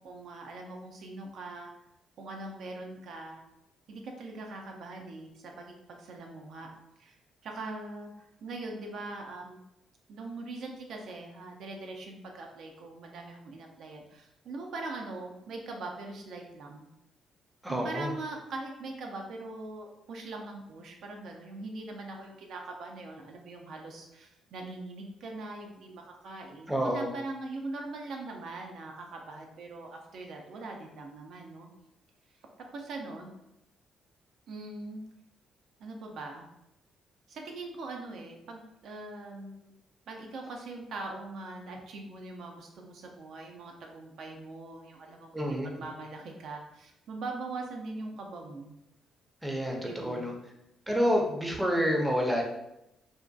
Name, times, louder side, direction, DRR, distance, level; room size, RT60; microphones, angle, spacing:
voice 1, 0.0-1.7 2.2-3.4 3.9-6.7 7.0-7.2 7.4-9.6 10.1-16.9 17.7-31.7 32.7-33.3 34.5-35.0 35.8-36.5 37.3-39.7 40.1-45.5 45.8-48.8 49.8-50.3, right 2 dB, 70° right, 1 dB, 0.4 m, -41 dB
voice 2, 17.6-18.1 26.7-27.1 45.3-45.7 49.4-50.3 50.9-52.4, equal, 10° right, 0 dB, 0.5 m, -28 dB
2.6 x 2.1 x 2.3 m, 0.86 s
cardioid pair, 90°, 0 cm